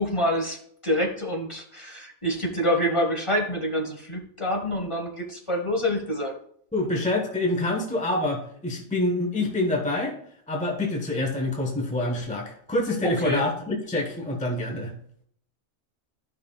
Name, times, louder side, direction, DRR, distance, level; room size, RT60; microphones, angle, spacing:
voice 1, 0.0-6.3 13.0-13.4, equal, 25° left, 1 dB, 1.3 m, -27 dB
voice 2, 6.7-10.2 10.5-14.9, left 2 dB, 5° left, 0 dB, 1.0 m, -26 dB
12.5 x 5.6 x 2.3 m, 0.64 s
omnidirectional pair, 1.3 m